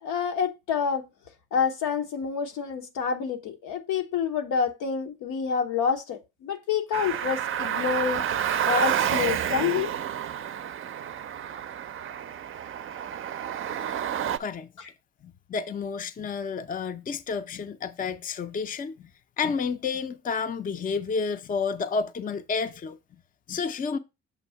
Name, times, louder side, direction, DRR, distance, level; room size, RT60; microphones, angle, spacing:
voice 1, 0.0-1.0 1.5-8.2 8.6-9.9 14.8-14.9, left 6 dB, 90° left, 1.1 m, -28 dB
Car, 6.9-14.4, right 9 dB, 45° right, 0.5 m, -29 dB
voice 2, 14.4-14.7 15.2-19.1 19.4-23.0 23.5-24.0, left 5 dB, 30° left, 0.5 m, -30 dB
7.0 x 2.7 x 5.6 m
cardioid pair, 90°, 30 cm